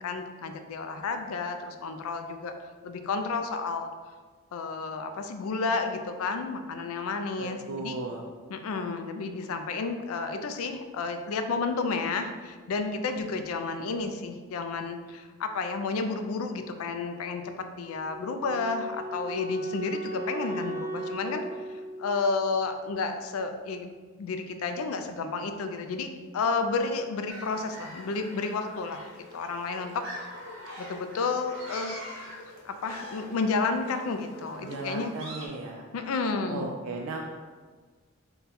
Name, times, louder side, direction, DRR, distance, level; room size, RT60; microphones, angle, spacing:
voice 1, 0.0-2.5 2.8-3.9 4.5-7.9 8.5-17.4 17.8-30.0 30.8-32.0 32.6-35.2 35.9-36.7, left 4 dB, 75° left, 7 dB, 0.4 m, -31 dB
voice 2, 7.4-8.2 34.6-35.9 36.5-37.3, right 3 dB, 75° right, 0 dB, 0.3 m, -36 dB
Wind instrument woodwind instrument, 17.8-22.9, right 2 dB, 15° right, 0.6 m, -37 dB
sound 1, 27.3-35.5, equal, 55° right, 0.7 m, -44 dB
3.8 x 2.2 x 4.1 m, 1.5 s
head